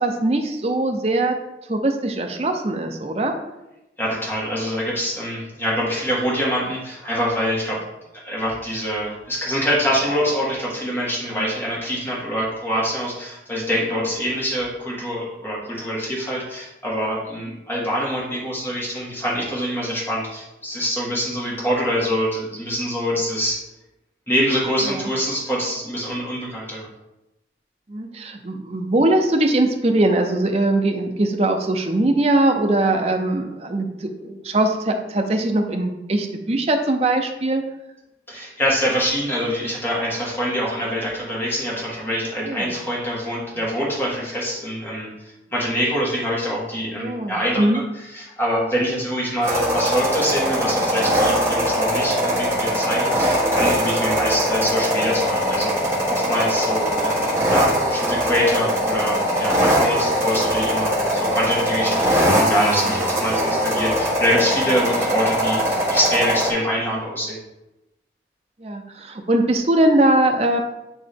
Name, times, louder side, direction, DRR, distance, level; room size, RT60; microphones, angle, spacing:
voice 1, 0.0-1.4 1.7-3.3 11.3-11.5 17.4-17.5 24.8-25.1 27.9-37.6 42.4-42.7 47.0-47.8 61.9-62.0 68.6-70.6, right 1 dB, 35° right, 4 dB, 0.6 m, -21 dB
voice 2, 4.0-7.8 8.2-23.6 24.3-26.9 38.3-45.1 45.5-47.8 48.1-67.4, equal, 15° left, -5 dB, 1.6 m, -25 dB
sound 1, 49.4-66.5, equal, 15° right, 1.3 m, -21 dB
9.1 x 3.1 x 3.5 m, 0.94 s
head